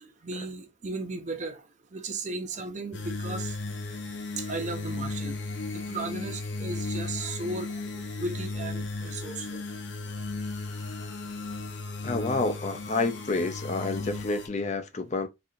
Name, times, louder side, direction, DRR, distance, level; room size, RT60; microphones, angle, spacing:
voice 1, 0.0-1.6 1.9-3.5 4.4-5.3 5.7-7.7 8.2-9.6, right 3 dB, 40° right, 0.7 m, -35 dB
sound 1, 2.9-14.5, left 3 dB, 70° left, 0.8 m, -35 dB
voice 2, 12.0-15.3, left 3 dB, 35° left, 0.5 m, -29 dB
4.2 x 2.7 x 2.5 m
head